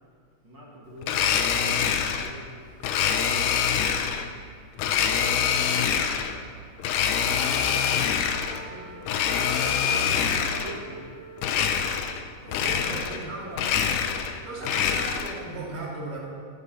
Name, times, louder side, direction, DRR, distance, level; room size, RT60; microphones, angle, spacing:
voice 1, 0.4-3.1 3.6-4.2 4.8-6.6 7.8-14.1, right 1 dB, 40° right, -5 dB, 2.2 m, -45 dB
Domestic sounds home sounds, 1.0-2.3 2.8-4.3 4.8-6.4 6.8-8.6 9.0-10.8 11.4-12.2 12.5-13.3 13.5-15.4, left 7 dB, 80° left, 2.2 m, -25 dB
Wind instrument woodwind instrument, 8.0-12.1, right 4 dB, 45° left, 2.7 m, -46 dB
voice 2, 12.4-13.5 14.4-16.2, right 2 dB, 75° right, -4 dB, 4.1 m, -37 dB
13.0 x 8.2 x 6.9 m, 2.1 s
omnidirectional pair, 3.8 m